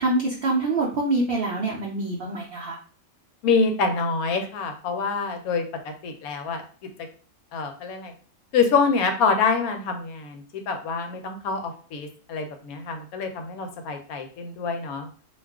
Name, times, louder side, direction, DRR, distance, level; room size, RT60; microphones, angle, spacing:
voice 1, 0.0-2.8, right 2 dB, 70° right, -3 dB, 0.5 m, -25 dB
voice 2, 3.4-5.6 6.0-6.6 7.5-8.1 8.5-15.1, left 4 dB, 85° left, 5 dB, 1.1 m, -26 dB
2.4 x 2.3 x 3.4 m, 0.41 s
omnidirectional pair, 1.5 m